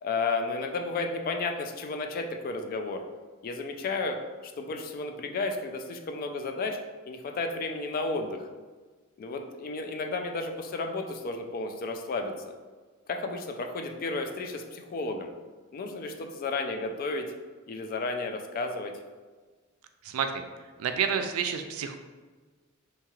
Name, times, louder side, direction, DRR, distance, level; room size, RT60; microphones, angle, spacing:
voice 1, 0.0-3.0 3.4-4.2 4.4-6.8 7.1-8.5 9.2-12.3 13.1-15.3 15.7-17.3 17.7-18.9, left 3 dB, 45° left, 4 dB, 0.3 m, -32 dB
voice 2, 20.0-20.4 20.8-22.0, right 7 dB, 80° right, 7 dB, 0.3 m, -29 dB
2.8 x 2.3 x 2.9 m, 1.4 s
head